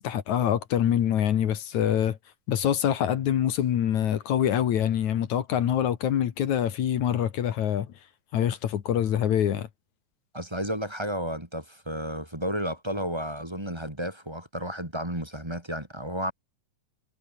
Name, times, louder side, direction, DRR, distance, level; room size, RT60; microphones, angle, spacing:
voice 1, 0.0-2.2 2.5-7.9 8.3-9.7, left 10 dB, 65° left, 2.8 m, -25 dB
voice 2, 10.3-16.3, equal, 10° right, 3.7 m, -32 dB
omnidirectional pair, 3.6 m